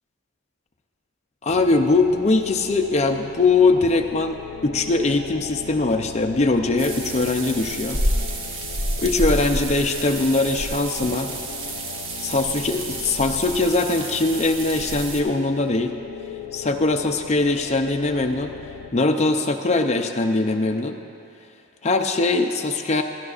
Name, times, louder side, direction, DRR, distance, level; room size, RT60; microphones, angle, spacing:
voice 1, 1.4-4.4 4.6-8.0 9.0-11.3 12.2-15.9 16.5-18.5 18.9-21.0 21.8-23.0, left 3 dB, 30° left, 5 dB, 0.5 m, -21 dB
sound 1, 1.5-18.9, left 7 dB, 90° left, 0.4 m, -39 dB
sound 2, 6.8-15.2, right 1 dB, 60° right, 1.1 m, -29 dB
17.5 x 12.5 x 2.4 m, 2.7 s
head